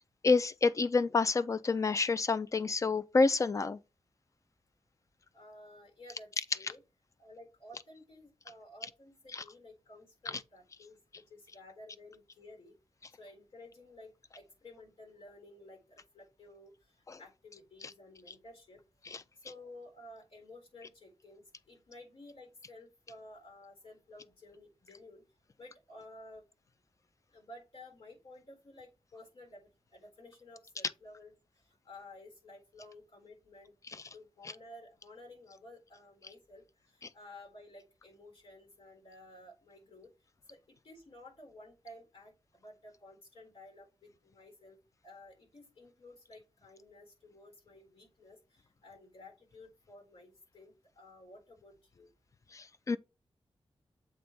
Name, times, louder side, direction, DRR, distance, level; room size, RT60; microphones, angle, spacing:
voice 1, 0.2-3.8 9.3-9.4 17.1-17.2 19.1-19.2 52.5-53.0, left 4 dB, 35° left, 0.4 m, -28 dB
voice 2, 5.3-6.8 7.2-12.8 13.2-18.8 19.4-25.2 25.6-26.4 27.3-31.3 31.7-33.7 34.1-40.1 40.5-44.8 45.0-52.1, left 1 dB, 70° left, 3.8 m, -54 dB
7.8 x 3.3 x 4.1 m
wide cardioid pair, 160°, 10 cm